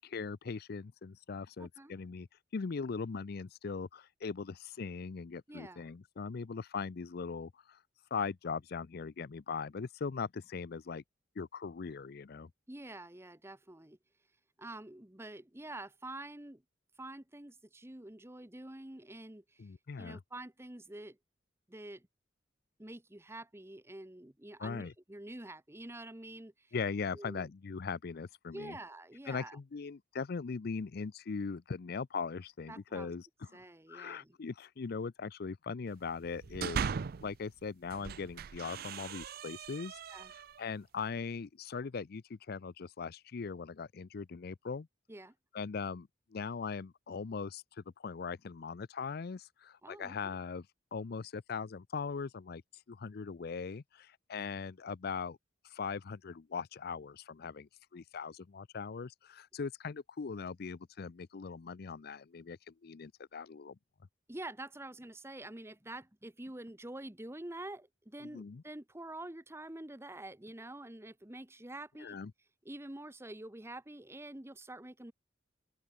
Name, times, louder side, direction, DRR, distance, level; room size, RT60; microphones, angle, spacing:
voice 1, 0.0-2.3 2.5-7.8 8.1-11.0 11.4-12.5 19.6-20.2 24.6-24.9 26.7-28.8 29.3-33.3 33.5-33.6 33.9-36.8 37.2-40.0 40.3-44.9 45.5-50.7 50.9-52.6 52.9-55.4 55.6-63.8 68.2-68.6 72.0-72.3, left 5 dB, 55° left, 0.5 m, -40 dB
voice 2, 1.6-2.0 5.5-5.8 12.7-14.0 14.6-16.6 17.0-19.7 20.0-21.2 21.7-22.1 22.8-26.7 27.1-27.5 28.5-29.6 32.7-33.1 33.5-34.3 40.1-40.3 45.1-45.3 49.8-50.4 64.3-72.2 72.6-75.1, right 1 dB, 15° right, 1.1 m, -47 dB
sound 1, 36.2-37.3 37.8-40.7, right 6 dB, 55° right, 0.4 m, -39 dB
open air
head